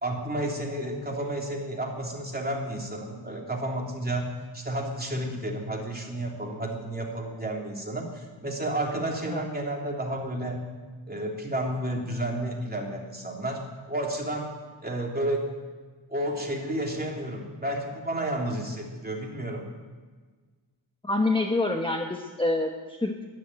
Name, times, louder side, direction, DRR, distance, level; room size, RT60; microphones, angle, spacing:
voice 1, 0.0-10.6 11.1-14.5 14.8-15.5 16.1-19.7, right 1 dB, 20° right, -1 dB, 3.2 m, -31 dB
voice 2, 21.0-23.2, left 2 dB, 10° left, 3 dB, 1.1 m, -27 dB
13.0 x 11.5 x 9.0 m, 1.4 s
wide cardioid pair, 85°, 46 cm